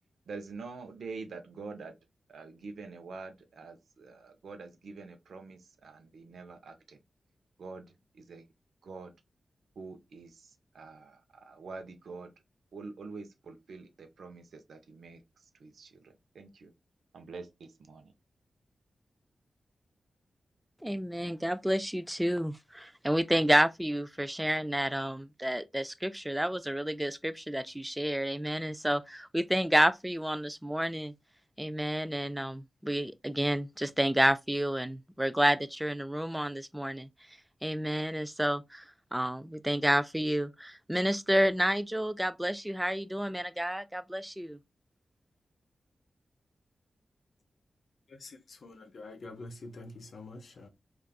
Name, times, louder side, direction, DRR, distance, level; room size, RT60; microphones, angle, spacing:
voice 1, 0.3-1.9 2.3-7.0 7.6-8.5 8.8-9.1 9.8-12.3 12.7-16.7 17.1-18.1, right 4 dB, 80° right, 0.6 m, -46 dB
voice 2, 20.8-31.1 31.6-37.1 37.6-38.8 39.1-44.6, equal, 10° right, 0.3 m, -30 dB
voice 3, 48.1-50.7, left 2 dB, 70° left, 0.6 m, -46 dB
3.4 x 2.4 x 2.3 m
cardioid pair, 45°, 0 cm